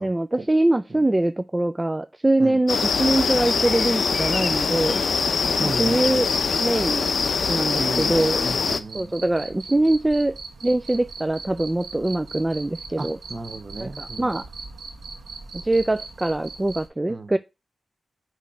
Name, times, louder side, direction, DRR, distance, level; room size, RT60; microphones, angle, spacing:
voice 1, 0.0-5.0 5.6-6.3 6.6-7.1 7.5-8.5 8.9-10.4 10.6-13.2 13.8-14.5 15.6-17.4, right 2 dB, 20° right, 0.3 m, -23 dB
sound 1, 2.7-8.8, left 5 dB, 70° left, 0.6 m, -23 dB
voice 2, 5.6-6.2 7.8-9.1 13.0-14.3 17.1-17.3, right 2 dB, 40° right, 1.0 m, -34 dB
Cricket, 6.2-16.9, right 4 dB, 85° right, 1.6 m, -40 dB
6.3 x 3.2 x 5.6 m
wide cardioid pair, 80°, 0 cm